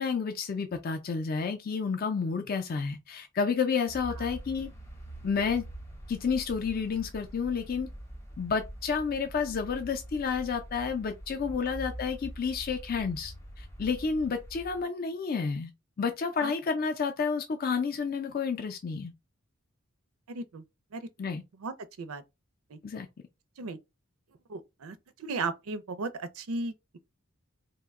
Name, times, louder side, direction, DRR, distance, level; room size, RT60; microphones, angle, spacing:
voice 1, 0.0-4.7 5.2-5.6 6.1-7.9 8.4-15.7 16.0-19.1 21.2-21.4 22.8-23.1, left 5 dB, 45° left, 0.4 m, -30 dB
sound 1, 3.9-14.8, right 1 dB, 15° left, 0.7 m, -44 dB
voice 2, 20.3-20.6 20.9-21.1 21.6-22.2 22.7-22.8 23.6-23.8 24.5-27.0, right 3 dB, 85° right, 0.5 m, -36 dB
2.8 x 2.1 x 3.5 m
head